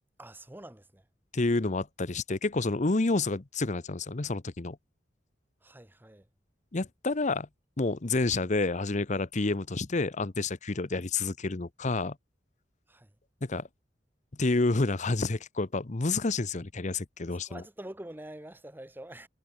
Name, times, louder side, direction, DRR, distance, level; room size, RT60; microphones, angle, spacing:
voice 1, 0.2-1.0 5.6-6.3 12.9-13.1 17.2-19.3, right 1 dB, 10° right, 1.1 m, -46 dB
voice 2, 1.3-4.8 6.7-7.5 7.8-12.2 13.4-13.7 14.4-17.6, left 3 dB, 40° left, 0.9 m, -29 dB
head